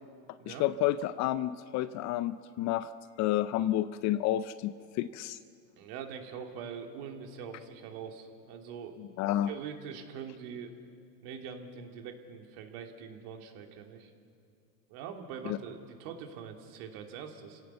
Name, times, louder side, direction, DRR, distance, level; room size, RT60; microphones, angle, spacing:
voice 1, 0.5-2.9 3.2-5.4 9.0-9.5 15.5-15.6, left 13 dB, 35° left, 14 dB, 0.6 m, -30 dB
voice 2, 5.8-9.0 9.5-10.7 11.2-14.1 14.9-17.6, right 7 dB, 55° right, 4 dB, 2.9 m, -43 dB
29.0 x 17.0 x 7.0 m, 2.3 s
hypercardioid pair, 120°, 50 cm